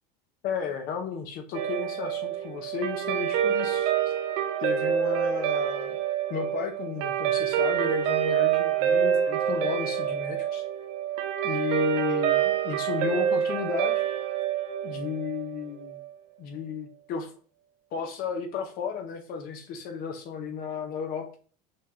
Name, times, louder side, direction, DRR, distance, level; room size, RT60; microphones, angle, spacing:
voice 1, 0.4-3.9 4.6-6.0 6.3-10.6 11.4-14.0 14.8-16.0 16.4-17.3 17.9-21.3, left 6 dB, 50° left, 5 dB, 0.7 m, -33 dB
Guitar, 1.5-16.1, right 9 dB, 70° right, 0.9 m, -27 dB
6.1 x 2.3 x 3.0 m, 0.41 s
supercardioid pair, 130°, 20 cm